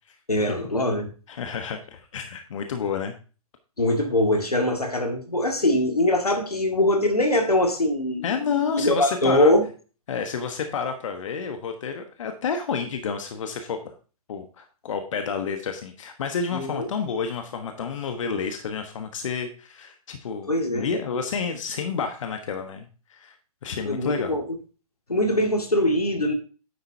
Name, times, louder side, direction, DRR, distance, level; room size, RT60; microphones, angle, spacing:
voice 1, 0.3-1.1 3.8-9.7 16.5-16.9 20.5-20.9 23.9-24.5 25.1-26.3, left 1 dB, 90° left, 4 dB, 1.9 m, -22 dB
voice 2, 1.3-3.1 8.2-9.5 10.1-13.9 14.3-23.3 23.6-24.4, left 6 dB, 55° left, 6 dB, 1.2 m, -30 dB
9.8 x 8.1 x 2.8 m, 0.36 s
figure-of-eight pair, 120°, 19 cm